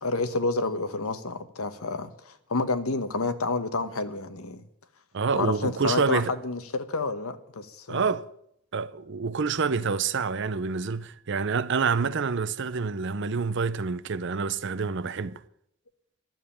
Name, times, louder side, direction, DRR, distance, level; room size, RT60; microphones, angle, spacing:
voice 1, 0.0-4.6 5.3-8.0, left 3 dB, 85° left, 1.2 m, -29 dB
voice 2, 5.1-6.3 7.9-8.3 8.7-15.4, right 5 dB, 55° right, 0.6 m, -27 dB
12.0 x 7.3 x 10.0 m
head